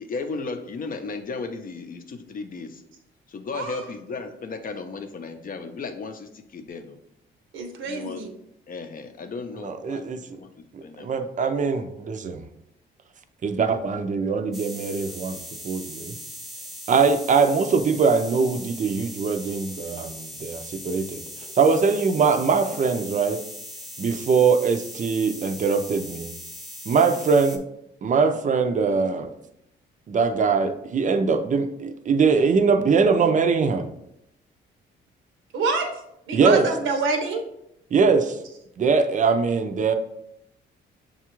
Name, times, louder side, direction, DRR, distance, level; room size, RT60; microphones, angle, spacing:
voice 1, 0.0-2.8 3.3-7.0 7.8-8.3 8.7-10.5 10.8-11.2, left 4 dB, 45° left, 7 dB, 0.6 m, -35 dB
voice 2, 3.5-3.8 7.5-8.3 35.5-35.9 36.3-37.4, right 4 dB, 80° right, 5 dB, 0.8 m, -26 dB
voice 3, 9.6-10.2 10.7-12.4 13.4-15.4 15.6-16.2 16.9-21.2 21.6-23.4 24.0-26.3 26.9-27.6 28.0-29.3 30.1-33.9 36.3-36.7 37.9-38.4 38.8-39.9, right 5 dB, 40° right, 7 dB, 0.5 m, -22 dB
sound 1, 14.5-27.6, equal, ahead, 0.6 m, -39 dB
6.4 x 2.4 x 3.0 m, 0.79 s
cardioid pair, 90°, 20 cm